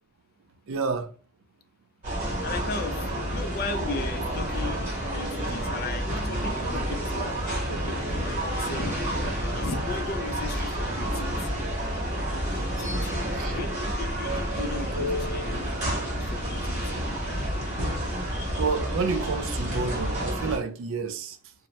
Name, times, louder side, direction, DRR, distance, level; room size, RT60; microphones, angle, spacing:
voice 1, 0.7-1.1 13.3-13.6 18.1-21.5, right 4 dB, 65° right, 0.4 m, -30 dB
sound 1, 2.0-20.6, equal, 35° right, 1.0 m, -29 dB
voice 2, 2.4-4.8 5.1-11.6 12.8-15.7 16.1-17.0, left 3 dB, 45° left, 0.3 m, -37 dB
sound 2, 10.4-17.5, equal, 25° left, 0.9 m, -39 dB
2.7 x 2.0 x 3.0 m
head